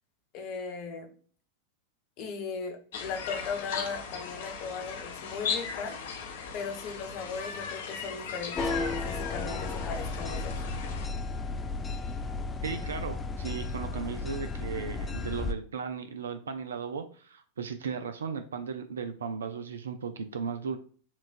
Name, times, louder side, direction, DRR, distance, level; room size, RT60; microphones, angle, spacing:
voice 1, 0.3-1.1 2.2-6.0 6.5-10.6, left 5 dB, 40° left, 3 dB, 1.1 m, -38 dB
sound 1, 2.9-11.1, left 6 dB, 60° left, 0.8 m, -38 dB
sound 2, 8.6-15.5, left 3 dB, 15° left, 0.3 m, -34 dB
voice 2, 12.6-20.8, right 6 dB, 65° right, 8 dB, 0.5 m, -36 dB
7.1 x 2.4 x 2.5 m, 0.42 s
figure-of-eight pair, 90°, 0 cm